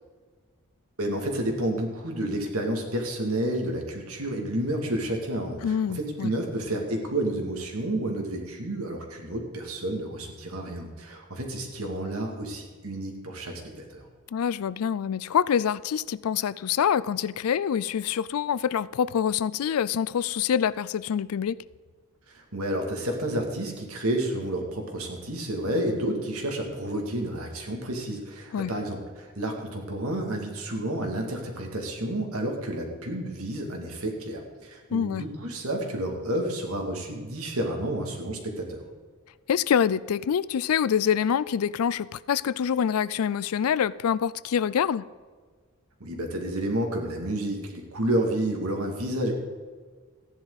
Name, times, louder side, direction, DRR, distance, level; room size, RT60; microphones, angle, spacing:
voice 1, 1.0-14.1 22.3-38.8 46.0-49.3, right 1 dB, 70° right, 2.4 m, -30 dB
voice 2, 5.6-6.3 14.3-21.6 28.5-28.7 34.9-35.2 39.5-45.1, left 8 dB, 70° left, 0.4 m, -26 dB
14.5 x 10.5 x 4.0 m
head